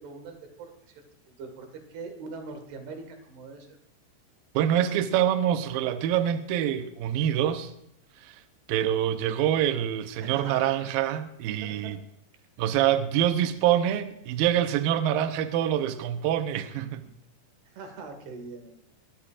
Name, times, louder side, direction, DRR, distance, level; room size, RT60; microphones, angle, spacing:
voice 1, 0.0-3.8 10.2-10.9 11.5-11.9 17.7-18.8, right 4 dB, 65° right, 3.7 m, -42 dB
voice 2, 4.5-7.7 8.2-8.4 8.7-12.0 12.6-17.1, right 10 dB, 85° right, 2.0 m, -25 dB
21.5 x 13.5 x 2.5 m
omnidirectional pair, 5.2 m